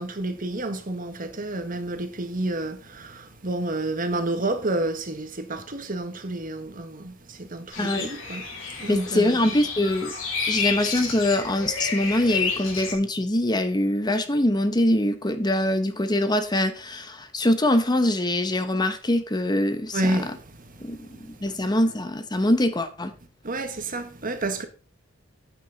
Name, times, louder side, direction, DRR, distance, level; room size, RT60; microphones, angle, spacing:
voice 1, 0.0-9.4 10.6-10.7 19.9-21.7 23.4-24.6, right 2 dB, 45° right, 1.4 m, -30 dB
sound 1, 7.7-12.9, left 5 dB, 80° left, 4.7 m, -31 dB
voice 2, 7.8-8.1 8.9-10.1 10.5-20.2 20.8-21.1 21.4-23.1, left 1 dB, 20° left, 1.0 m, -23 dB
9.4 x 9.1 x 4.0 m
head